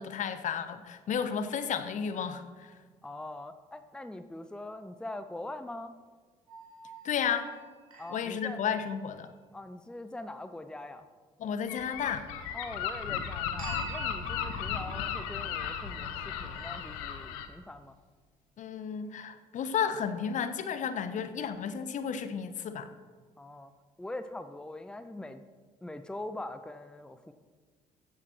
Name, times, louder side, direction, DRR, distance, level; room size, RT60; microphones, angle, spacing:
voice 1, 0.0-2.7 7.0-7.5 8.1-9.3 11.4-12.3 18.6-22.9, left 7 dB, 45° left, 11 dB, 1.1 m, -32 dB
voice 2, 3.0-5.9 8.0-8.6 9.5-11.0 12.5-17.9 23.4-23.7 24.0-25.4 25.8-27.3, left 1 dB, 5° left, 11 dB, 0.7 m, -42 dB
sound 1, 6.5-9.3 13.6-17.1, right 6 dB, 80° right, 3.4 m, -48 dB
Gull seagull, 11.7-17.5, left 8 dB, 65° left, 1.2 m, -35 dB
15.0 x 10.5 x 4.5 m, 1.5 s
figure-of-eight pair, 50°, 18 cm